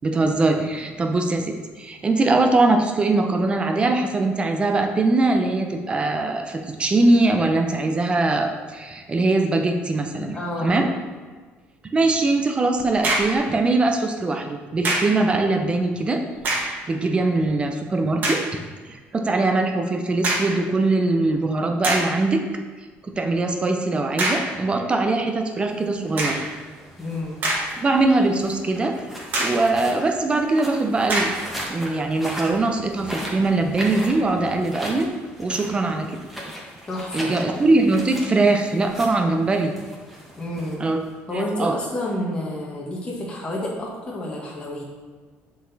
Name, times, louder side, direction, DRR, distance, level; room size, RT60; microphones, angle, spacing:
voice 1, 0.0-10.9 11.9-16.2 16.6-18.4 18.9-22.4 23.1-26.4 27.8-28.9 29.4-31.3 31.7-35.1 35.4-36.1 37.1-39.7 40.8-41.0 41.3-41.8, right 2 dB, 25° right, 4 dB, 0.7 m, -21 dB
voice 2, 10.2-10.8 27.0-27.4 36.9-37.3 40.4-40.8 41.3-44.8, left 1 dB, 20° left, -3 dB, 1.2 m, -29 dB
sound 1, 12.8-13.4 14.8-15.2 16.3-16.8 17.4-17.5 18.2-18.5 20.2-20.6 21.3-21.4 21.8-22.2 24.2-24.6 26.2-26.5 27.2-28.0 28.4-28.5 29.3-29.7 31.1-31.5, right 2 dB, 40° right, 1.5 m, -25 dB
sound 2, 25.6-41.3, equal, ahead, 1.3 m, -38 dB
7.3 x 4.1 x 4.0 m, 1.5 s
cardioid pair, 125°, 5 cm